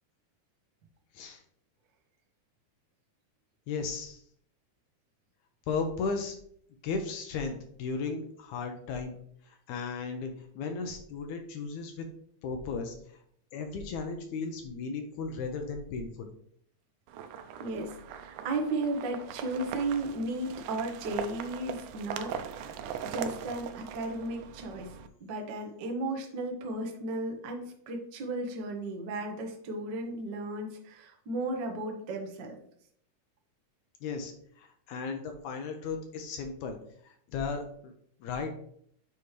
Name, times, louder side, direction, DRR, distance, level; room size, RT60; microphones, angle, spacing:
voice 1, 3.7-4.2 5.7-6.4 6.8-9.2 9.4-12.1 12.4-13.2 13.5-16.3 34.0-36.8 37.0-37.9 38.2-38.5, left 4 dB, 80° left, 5 dB, 2.0 m, -35 dB
sound 1, 17.1-25.1, right 8 dB, 85° right, 2.1 m, -41 dB
voice 2, 17.6-22.8 23.1-24.9 25.2-32.6, right 2 dB, 65° right, 2 dB, 1.0 m, -35 dB
7.1 x 4.8 x 3.1 m, 0.65 s
omnidirectional pair, 3.5 m